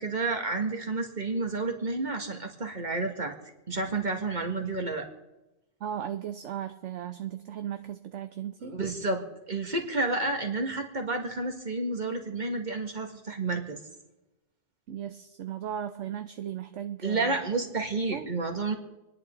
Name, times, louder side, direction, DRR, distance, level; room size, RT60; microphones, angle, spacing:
voice 1, 0.0-3.3 3.7-5.1 8.6-9.2 9.5-13.8 17.0-18.7, right 3 dB, 35° right, 3 dB, 2.1 m, -30 dB
voice 2, 5.8-8.8 14.9-17.3 18.1-18.3, right 9 dB, 65° right, 9 dB, 1.0 m, -36 dB
28.0 x 10.5 x 3.9 m, 1.0 s
omnidirectional pair, 1.4 m